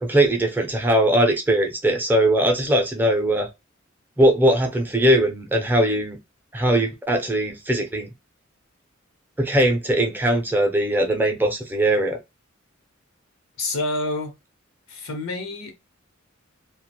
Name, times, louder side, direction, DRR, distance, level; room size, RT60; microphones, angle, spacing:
voice 1, 0.0-3.5 4.2-6.2 6.5-8.1 9.4-12.2, right 1 dB, 10° right, 0.5 m, -20 dB
voice 2, 13.6-14.3 14.9-15.7, left 2 dB, 90° left, 0.9 m, -28 dB
2.4 x 2.2 x 2.8 m
head